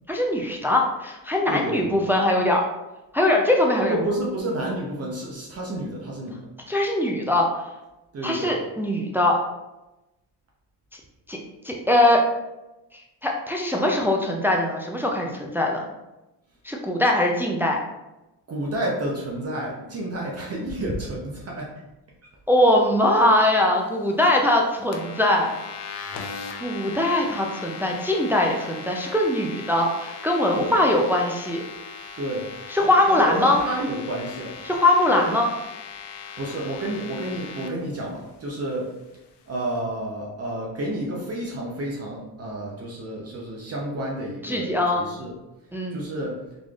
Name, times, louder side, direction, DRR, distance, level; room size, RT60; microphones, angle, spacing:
voice 1, 0.1-2.7 3.1-4.0 6.7-7.6 8.2-9.4 11.3-11.4 11.6-12.3 12.9-15.9 16.6-17.8 22.5-25.5 26.6-31.6 32.7-33.6 34.6-35.5 44.4-45.1 45.7-46.0, left 1 dB, 5° right, 0 dB, 0.3 m, -21 dB
voice 2, 1.5-2.0 3.8-6.4 8.1-8.5 18.5-21.7 30.5-30.7 32.2-32.5 33.1-34.5 35.1-35.3 36.4-38.9 39.5-45.3 45.9-46.4, right 1 dB, 35° right, -3 dB, 0.7 m, -30 dB
sound 1, 24.9-37.7, left 5 dB, 85° left, 0.7 m, -39 dB
3.9 x 3.2 x 2.4 m, 0.98 s
cardioid pair, 110°, 41 cm